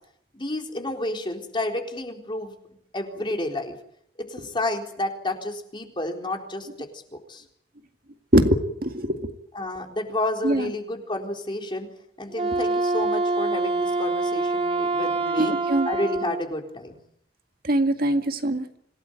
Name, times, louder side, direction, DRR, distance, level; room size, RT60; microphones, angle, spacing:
voice 1, 0.3-2.5 2.9-3.8 4.2-7.4 9.5-11.9 12.2-15.5 15.9-17.0, left 1 dB, 30° left, 3 dB, 4.0 m, -30 dB
voice 2, 8.3-9.3 10.4-10.7 15.4-15.9 17.7-18.8, right 1 dB, 60° right, 6 dB, 2.1 m, -22 dB
Wind instrument woodwind instrument, 12.3-16.4, right 3 dB, 35° right, 2.3 m, -25 dB
26.5 x 17.5 x 8.9 m, 0.70 s
head